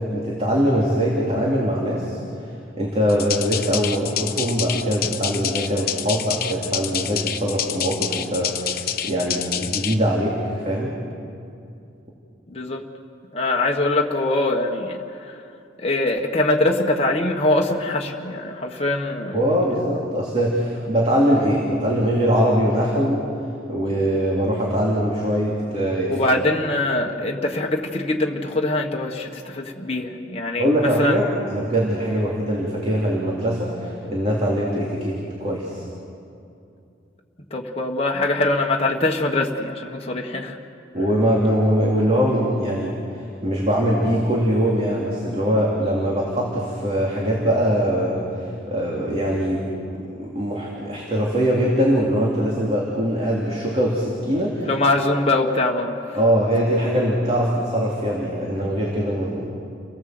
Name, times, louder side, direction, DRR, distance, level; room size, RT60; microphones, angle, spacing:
voice 1, 0.0-2.2 2.8-10.9 19.3-23.2 23.7-26.1 30.6-35.8 40.9-42.9 43.4-49.6 50.2-54.7 56.1-59.5, equal, 30° right, -4 dB, 3.1 m, -22 dB
sound 1, 3.1-9.9, left 10 dB, 50° left, 1.0 m, -27 dB
voice 2, 12.5-12.8 13.3-15.4 15.8-19.4 26.1-31.2 37.5-40.6 54.6-56.2, left 2 dB, 30° left, 0 dB, 1.5 m, -23 dB
29.5 x 18.5 x 7.9 m, 2.5 s
head